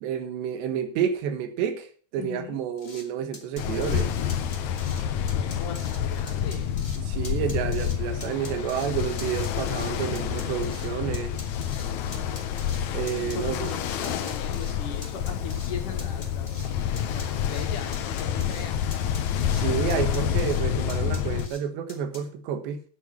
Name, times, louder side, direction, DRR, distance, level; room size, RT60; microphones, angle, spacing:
voice 1, 0.0-4.1 7.0-11.4 12.9-13.7 19.5-22.8, right 8 dB, 90° right, 9 dB, 3.6 m, -30 dB
voice 2, 2.2-2.6 5.3-6.8 13.2-16.7 17.1-18.9, left 6 dB, 60° left, 3 dB, 2.7 m, -39 dB
sound 1, 2.8-3.0 3.3-4.0 4.3-5.0 5.3-6.0 6.3-7.0 7.2-8.0 8.2-8.9 9.2-10.9 11.1-12.8 13.1-13.8 14.0-14.8 15.0-15.7 16.0-16.7 17.0-17.6 17.9-18.7 18.9-19.6 19.9-20.6 20.9-21.6 21.9-22.2, left 2 dB, 15° left, 1.7 m, -43 dB
Ocean, 3.6-21.5, left 9 dB, 85° left, 1.6 m, -28 dB
9.7 x 8.4 x 7.1 m, 0.43 s
omnidirectional pair, 4.8 m